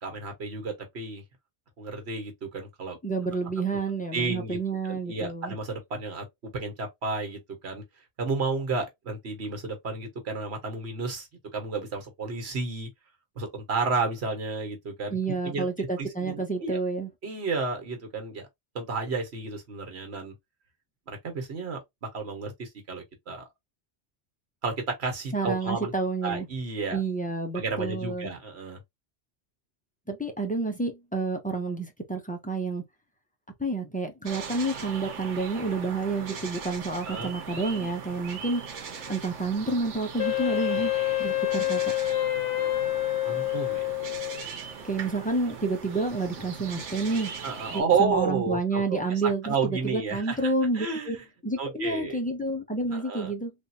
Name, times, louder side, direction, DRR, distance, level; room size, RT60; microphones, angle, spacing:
voice 1, 0.0-1.2 1.8-3.0 4.1-4.6 4.8-6.2 6.5-7.8 8.2-12.9 13.3-15.7 16.0-16.8 17.2-18.5 18.7-20.3 21.1-23.5 24.6-25.9 26.2-27.0 27.5-28.8 37.0-37.3 43.2-43.9 47.4-51.3 51.6-52.2 52.9-53.3, right 4 dB, 65° right, 1.4 m, -31 dB
voice 2, 3.0-5.5 15.1-17.1 25.3-26.5 26.9-28.3 30.1-32.8 33.6-38.7 39.1-40.9 41.2-41.9 44.8-47.3 47.7-51.2 51.4-53.5, right 3 dB, 10° left, 0.6 m, -29 dB
sound 1, 34.3-47.8, right 6 dB, 85° right, 1.1 m, -40 dB
Wind instrument woodwind instrument, 40.2-44.4, left 17 dB, 90° left, 1.0 m, -27 dB
3.5 x 2.6 x 2.6 m
omnidirectional pair, 1.2 m